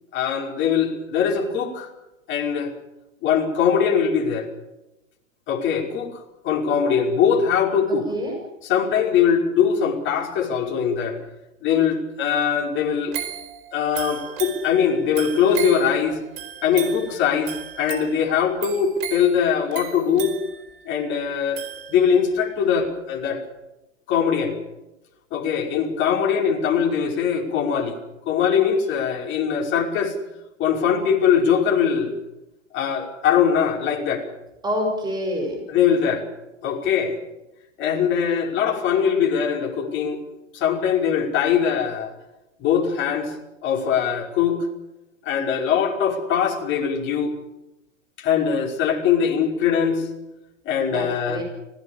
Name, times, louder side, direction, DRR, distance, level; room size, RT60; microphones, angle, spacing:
voice 1, 0.1-1.9 2.3-2.7 3.2-4.5 5.5-8.1 8.6-11.2 11.6-13.2 13.7-16.2 16.6-20.4 20.9-23.4 24.1-24.6 25.3-28.0 28.3-30.1 30.6-32.1 32.7-34.3 35.7-36.2 36.6-37.2 37.8-40.2 40.5-42.1 42.6-43.3 43.6-44.7 45.3-47.3 48.2-50.1 50.7-51.4, left 7 dB, 30° left, 0 dB, 5.4 m, -21 dB
voice 2, 7.9-8.4 34.6-35.6 50.9-51.4, equal, 10° right, 1 dB, 6.3 m, -27 dB
sound 1, 13.1-22.4 22.8-22.9, right 10 dB, 40° right, 4.7 m, -36 dB
26.0 x 18.5 x 7.4 m, 0.97 s
hypercardioid pair, 135°, 39 cm